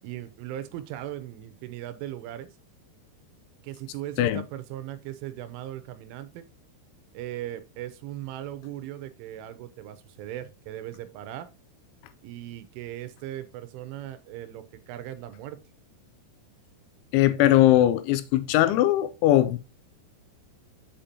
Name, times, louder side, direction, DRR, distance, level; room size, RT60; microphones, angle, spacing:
voice 1, 0.0-2.5 3.6-6.5 7.1-11.5 12.2-15.6, right 13 dB, 85° right, 3.1 m, -38 dB
voice 2, 17.1-19.6, left 13 dB, 85° left, 2.8 m, -20 dB
7.3 x 5.1 x 2.8 m
omnidirectional pair, 5.6 m